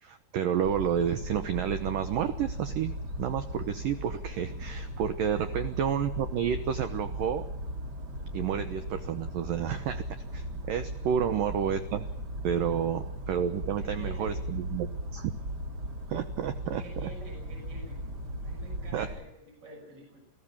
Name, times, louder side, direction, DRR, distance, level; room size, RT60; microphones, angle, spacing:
voice 1, 0.0-7.4 8.3-10.0 10.3-12.1 12.4-15.3 16.1-17.1 18.9-19.1, right 8 dB, 90° right, 10 dB, 1.9 m, -30 dB
sound 1, 0.6-19.2, equal, 40° right, 1.5 m, -37 dB
voice 2, 13.8-14.4 16.6-18.0 18.4-20.2, right 1 dB, 15° right, 1 dB, 6.7 m, -49 dB
29.5 x 16.5 x 7.2 m, 0.88 s
omnidirectional pair, 5.4 m